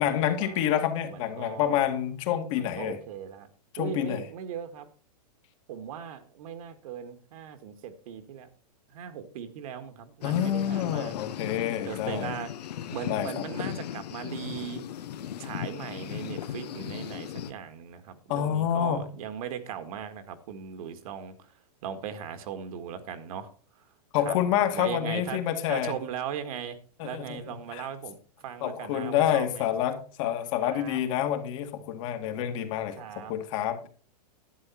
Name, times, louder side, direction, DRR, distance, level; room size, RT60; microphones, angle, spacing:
voice 1, 0.0-3.0 3.7-4.2 10.2-12.3 13.1-13.5 18.3-19.1 24.1-26.0 27.0-27.9 28.6-33.9, left 10 dB, 50° left, 6 dB, 2.1 m, -28 dB
voice 2, 1.1-2.0 2.6-3.5 3.8-4.9 5.7-8.5 8.9-11.1 11.7-12.5 12.9-14.8 15.4-21.5 21.8-23.5 24.2-24.4 24.7-25.4 25.7-29.7 30.6-31.0 33.0-33.3, right 8 dB, 60° right, 9 dB, 1.9 m, -38 dB
sound 1, 10.2-17.5, left 10 dB, 75° left, 1.0 m, -37 dB
11.5 x 8.9 x 4.4 m, 0.41 s
hypercardioid pair, 135°, 21 cm